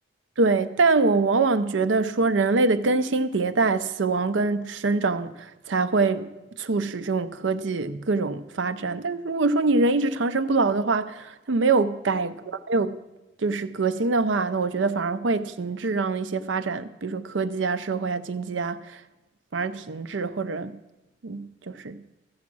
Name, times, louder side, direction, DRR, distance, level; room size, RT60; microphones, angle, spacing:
voice 1, 0.4-6.3 6.6-13.0 13.4-19.0 19.5-20.8 21.2-22.0, right 3 dB, 80° right, 0.6 m, -24 dB
14.5 x 7.3 x 6.1 m
head